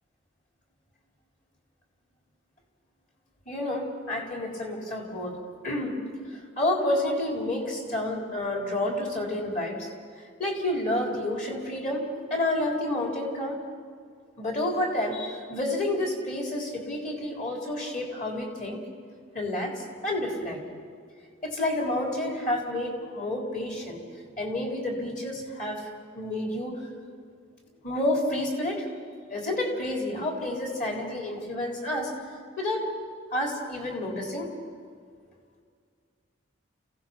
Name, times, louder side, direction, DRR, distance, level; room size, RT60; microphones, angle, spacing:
voice 1, 3.5-5.4 5.6-6.0 6.6-9.9 10.4-12.0 12.3-13.6 14.4-18.8 19.3-20.6 21.4-24.0 24.4-26.8 27.8-28.9 29.3-32.1 32.6-32.9 33.3-34.5, left 1 dB, 40° left, 0 dB, 4.0 m, -29 dB
28.5 x 16.5 x 6.0 m, 2.1 s
head